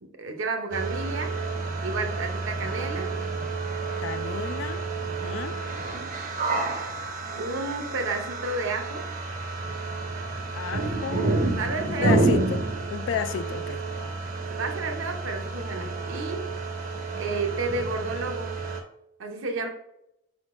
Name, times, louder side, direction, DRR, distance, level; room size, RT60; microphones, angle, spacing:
voice 1, 0.0-3.2 5.9-6.2 7.4-9.1 11.6-12.2 14.5-16.5 17.2-18.5 19.2-19.7, right 3 dB, 75° right, 0.7 m, -32 dB
sound 1, 0.7-18.8, right 3 dB, 40° right, 0.6 m, -30 dB
voice 2, 4.0-5.6 10.5-11.3 11.9-13.8, left 7 dB, 65° left, 0.3 m, -32 dB
5.1 x 3.7 x 2.5 m
head